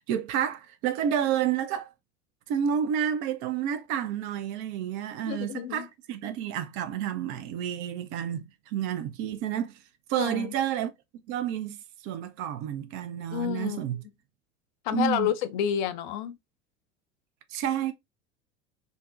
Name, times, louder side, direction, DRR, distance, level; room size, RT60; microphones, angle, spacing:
voice 1, 0.0-1.9 2.5-9.8 10.1-10.9 11.3-14.0 14.9-15.3 17.5-17.9, right 9 dB, 40° right, 0.5 m, -30 dB
voice 2, 5.2-5.8 10.2-10.5 13.3-13.8 14.8-16.4, left 10 dB, 45° left, 0.4 m, -29 dB
2.6 x 2.0 x 2.4 m
figure-of-eight pair, 75°, 34 cm